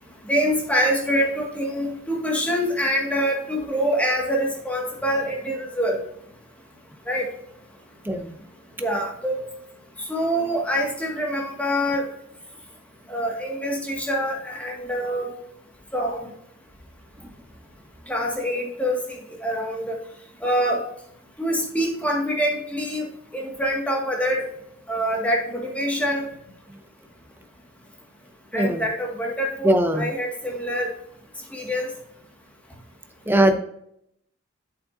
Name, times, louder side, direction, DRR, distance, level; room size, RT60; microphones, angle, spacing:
voice 1, 0.3-6.0 7.1-7.3 8.8-9.4 10.1-12.1 13.1-15.3 15.9-16.2 18.1-19.0 19.4-20.0 20.4-20.8 21.4-23.1 23.3-24.4 24.9-26.3 28.5-30.9 31.5-31.9, equal, 5° left, -1 dB, 1.9 m, -25 dB
voice 2, 28.5-28.9 29.6-30.1 33.3-33.5, right 1 dB, 10° right, 6 dB, 0.8 m, -20 dB
9.0 x 7.4 x 2.7 m, 0.73 s
head